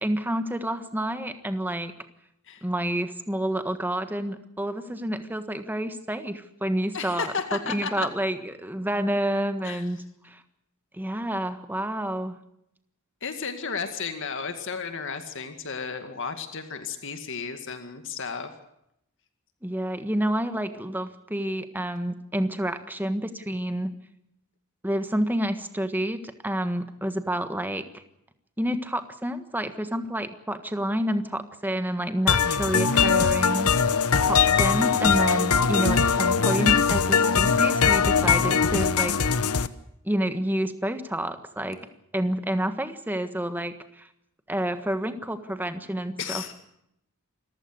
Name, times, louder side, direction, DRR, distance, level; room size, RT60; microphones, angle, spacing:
voice 1, 0.0-1.9 2.6-7.3 7.7-10.4 10.9-12.4 19.6-23.9 24.8-28.0 28.6-33.7 34.2-39.2 40.0-41.8 42.1-44.1 44.5-46.5, right 1 dB, 10° right, 9 dB, 1.5 m, -29 dB
voice 2, 6.9-8.1 9.6-9.8 13.2-18.5 46.2-46.5, left 5 dB, 55° left, 7 dB, 2.2 m, -33 dB
sound 1, 32.3-39.7, left 6 dB, 75° left, 1.1 m, -21 dB
27.5 x 15.0 x 8.0 m, 0.77 s
head